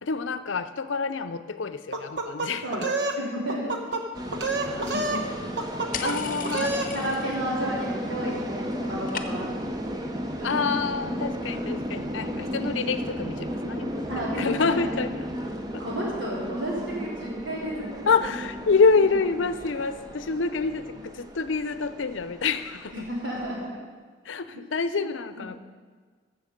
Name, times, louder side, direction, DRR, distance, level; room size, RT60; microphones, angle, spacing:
voice 1, 0.0-2.9 6.0-6.8 10.4-15.2 15.7-15.8 18.1-23.1 24.2-25.6, left 4 dB, 90° left, 12 dB, 0.6 m, -27 dB
sound 1, 1.9-3.2 3.5-4.0 4.3-5.2 5.6-6.2 6.4-6.9, right 2 dB, 70° right, 1.0 m, -28 dB
voice 2, 3.1-5.2 5.6-5.8 6.6-10.0 10.4-10.6 14.1-14.9 15.8-18.3 22.9-23.8 25.0-25.1 25.4-25.6, equal, 85° right, -5 dB, 3.7 m, -33 dB
sound 2, 4.1-23.7, equal, 20° right, 0.7 m, -34 dB
sound 3, 5.9-7.5 7.8-8.4 8.6-9.7, left 7 dB, 50° left, 0.7 m, -37 dB
14.0 x 7.1 x 5.2 m, 1.5 s
head